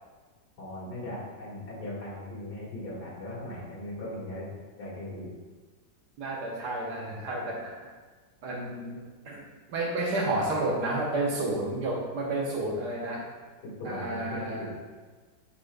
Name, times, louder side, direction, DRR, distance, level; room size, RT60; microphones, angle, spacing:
voice 1, 0.6-4.5 4.8-5.3 13.6-14.7, left 1 dB, 60° left, -7 dB, 2.5 m, -38 dB
voice 2, 6.2-7.9 8.4-13.3 13.8-14.7, right 2 dB, 65° right, -1 dB, 1.4 m, -31 dB
8.5 x 5.0 x 2.2 m, 1.4 s
omnidirectional pair, 2.0 m